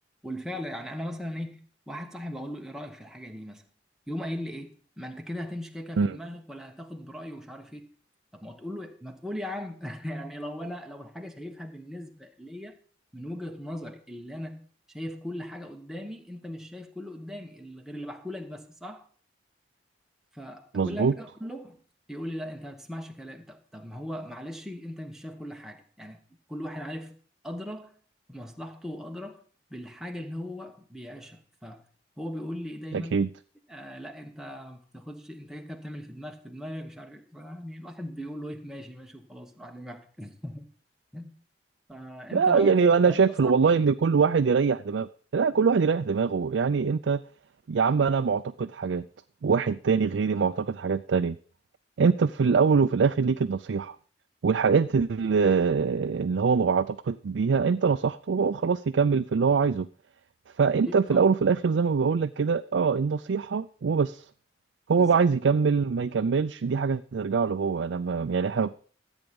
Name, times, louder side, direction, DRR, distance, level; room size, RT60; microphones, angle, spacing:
voice 1, 0.2-3.7 4.1-7.9 8.3-12.8 13.1-19.1 20.3-21.8 22.1-26.2 26.5-27.2 27.4-27.9 28.3-29.4 29.7-31.9 32.2-33.2 33.7-40.7 41.1-41.4 41.9-43.8 60.8-61.2 64.9-65.2, equal, 5° right, 1.2 m, -39 dB
voice 2, 20.7-21.1 32.9-33.3 42.3-47.2 47.7-49.0 49.4-51.4 52.0-54.0 54.4-59.9 60.6-64.2 64.9-68.7, right 5 dB, 85° right, 0.4 m, -23 dB
13.5 x 8.2 x 5.3 m
head